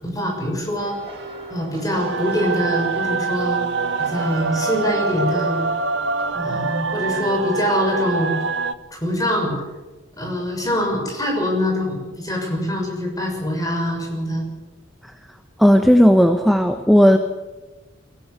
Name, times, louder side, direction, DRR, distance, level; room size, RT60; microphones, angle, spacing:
voice 1, 0.0-1.0 1.5-3.6 4.0-5.6 6.3-8.3 9.0-9.6 10.2-14.5, equal, 20° left, 1 dB, 6.5 m, -24 dB
sound 1, 0.8-6.2, right 1 dB, 30° right, 6.1 m, -40 dB
sound 2, 1.9-8.7, right 4 dB, 65° right, 1.0 m, -25 dB
voice 2, 15.6-17.2, equal, ahead, 5 dB, 1.1 m, -13 dB
23.0 x 17.5 x 8.4 m, 1.2 s
head